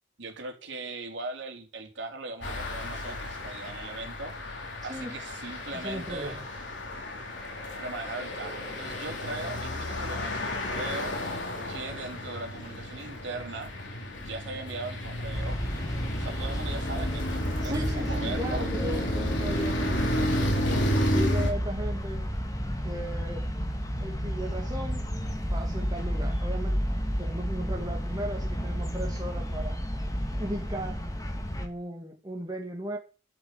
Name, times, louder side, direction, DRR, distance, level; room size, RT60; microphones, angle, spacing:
voice 1, 0.2-4.6 4.8-6.4 7.7-13.7 14.2-15.6 16.1-18.7, right 3 dB, 65° right, 3.4 m, -39 dB
sound 1, 2.4-21.5, equal, 70° left, 3.9 m, -32 dB
voice 2, 4.9-5.2 5.7-6.5 17.6-22.3 22.8-23.5 24.0-25.0 25.4-26.9 27.2-29.8 30.4-31.0 31.6-33.0, equal, 20° right, 2.1 m, -37 dB
sound 2, 15.3-31.7, equal, 20° left, 2.2 m, -32 dB
12.0 x 7.9 x 7.8 m
head